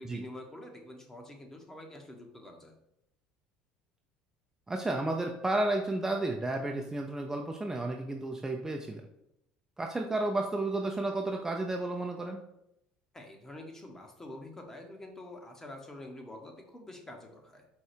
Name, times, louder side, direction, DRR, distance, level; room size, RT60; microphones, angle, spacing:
voice 1, 0.0-2.7 13.1-17.7, left 1 dB, 15° left, 3 dB, 1.0 m, -47 dB
voice 2, 4.7-9.0 9.8-12.4, right 2 dB, 15° right, 2 dB, 0.5 m, -32 dB
4.7 x 2.3 x 4.4 m, 0.79 s
supercardioid pair, 90°, 3 cm